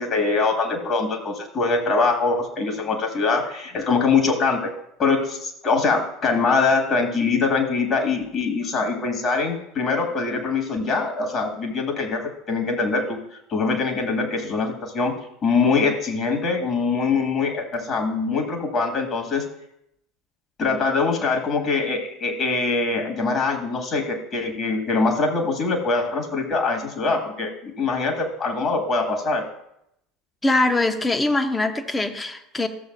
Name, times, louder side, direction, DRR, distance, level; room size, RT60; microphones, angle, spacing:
voice 1, 0.0-4.7 5.0-13.2 13.5-15.2 15.4-19.5 20.6-29.4, left 4 dB, 40° left, 2 dB, 1.8 m, -23 dB
voice 2, 30.4-32.7, left 2 dB, 15° left, 8 dB, 0.9 m, -22 dB
14.0 x 7.2 x 2.6 m, 0.79 s
figure-of-eight pair, 70°, 0 cm